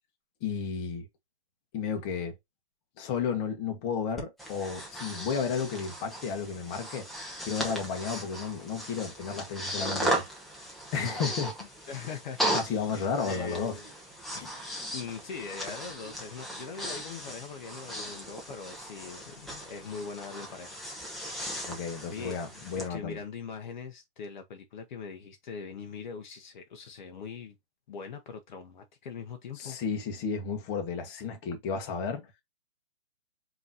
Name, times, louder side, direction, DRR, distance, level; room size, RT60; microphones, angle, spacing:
voice 1, 0.4-1.1 1.7-2.4 3.0-7.1 7.4-10.3 10.9-11.7 12.5-13.8 14.3-14.5 21.7-23.2 29.6-32.3, left 6 dB, 25° left, 1.2 m, -33 dB
Breathing, 4.2-22.9, right 1 dB, ahead, 0.9 m, -37 dB
voice 2, 11.9-13.9 14.9-20.8 22.1-22.4 22.9-27.6 27.9-29.8, left 5 dB, 45° left, 1.0 m, -41 dB
5.3 x 3.1 x 2.7 m
hypercardioid pair, 140°, 33 cm